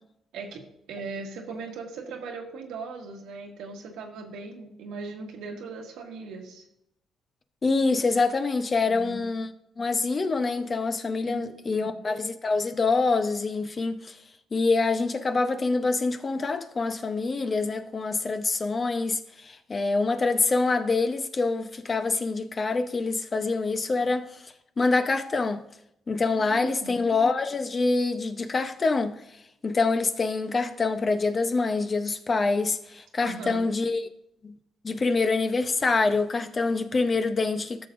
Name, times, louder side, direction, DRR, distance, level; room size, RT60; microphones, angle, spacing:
voice 1, 0.3-6.6 8.8-9.3 11.2-12.0 26.3-27.0 33.2-33.6, right 4 dB, 90° right, 1.6 m, -39 dB
voice 2, 7.6-9.5 9.8-14.2 14.5-25.6 26.1-29.1 29.6-34.1 34.4-34.5 34.8-37.9, left 3 dB, 35° left, 0.8 m, -26 dB
13.5 x 6.9 x 2.6 m
cardioid pair, 90°, 0 cm